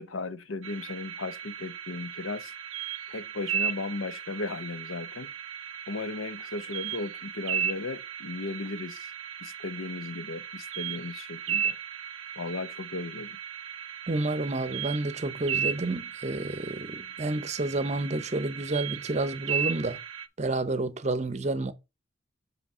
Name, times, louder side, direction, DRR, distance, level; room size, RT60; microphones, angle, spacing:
voice 1, 0.0-2.5 3.1-5.3 5.9-9.1 9.4-11.8 12.4-13.4, left 3 dB, 90° left, 0.7 m, -36 dB
sound 1, 0.6-20.3, right 8 dB, 85° right, 0.7 m, -36 dB
voice 2, 14.1-20.0 20.4-21.7, right 2 dB, 35° right, 0.6 m, -30 dB
7.3 x 3.3 x 5.4 m
head